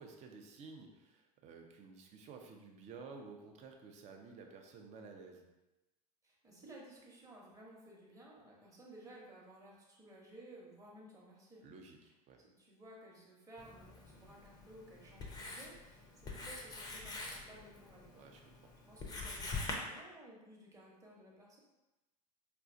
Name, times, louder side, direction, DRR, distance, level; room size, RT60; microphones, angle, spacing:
voice 1, 0.0-5.5 11.6-12.4 18.1-18.7, right 4 dB, 35° right, 3 dB, 0.5 m, -53 dB
voice 2, 6.2-11.7 12.4-18.3 18.8-21.6, right 1 dB, 15° right, -3 dB, 1.0 m, -56 dB
Writing, 13.6-19.8, left 3 dB, 20° left, 0.5 m, -45 dB
4.1 x 2.2 x 2.6 m, 1.0 s
figure-of-eight pair, 80°, 20 cm